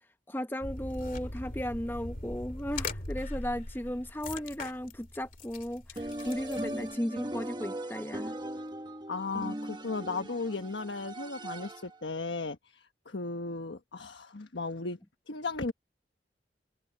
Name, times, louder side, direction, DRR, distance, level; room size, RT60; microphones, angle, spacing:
voice 1, 0.3-8.4, equal, 10° left, 0.9 m, -35 dB
sound 1, 0.6-6.9, left 2 dB, 50° left, 2.4 m, -40 dB
sound 2, 6.0-12.0, right 1 dB, 25° right, 1.1 m, -39 dB
voice 2, 9.1-15.0 15.3-15.7, left 3 dB, 85° left, 1.3 m, -36 dB
head